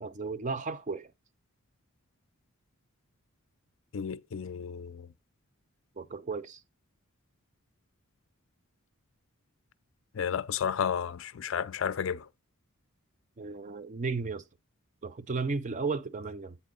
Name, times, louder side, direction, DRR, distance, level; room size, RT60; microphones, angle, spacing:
voice 1, 0.0-1.1 6.0-6.6 13.4-14.4 15.0-16.6, right 4 dB, 35° right, 0.4 m, -34 dB
voice 2, 3.9-5.1 10.1-12.3, left 7 dB, 60° left, 0.4 m, -32 dB
8.3 x 4.4 x 5.0 m
head